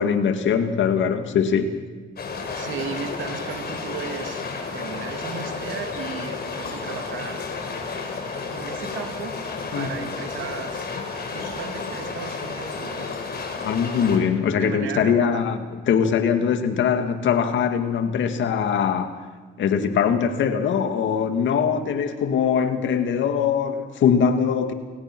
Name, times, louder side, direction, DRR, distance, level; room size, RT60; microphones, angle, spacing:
voice 1, 0.0-1.8 9.7-9.9 13.6-15.6 15.9-19.2 19.6-24.7, left 7 dB, 70° left, 2.1 m, -22 dB
sound 1, 2.2-14.2, left 4 dB, 55° left, 5.0 m, -32 dB
voice 2, 2.4-4.4 4.7-7.4 8.3-9.3 9.7-10.9 11.3-13.1 14.6-15.4, right 6 dB, 75° right, 2.9 m, -35 dB
29.5 x 18.0 x 6.2 m
cardioid pair, 90°, 20 cm